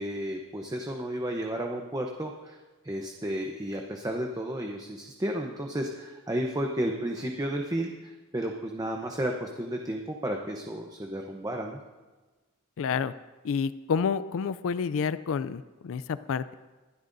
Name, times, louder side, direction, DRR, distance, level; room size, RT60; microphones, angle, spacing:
voice 1, 0.0-2.6 2.8-11.8, right 1 dB, 15° right, 2 dB, 0.8 m, -32 dB
voice 2, 12.8-13.1 13.4-16.5, left 6 dB, 65° left, 15 dB, 0.4 m, -29 dB
22.5 x 12.0 x 2.6 m, 1.2 s
head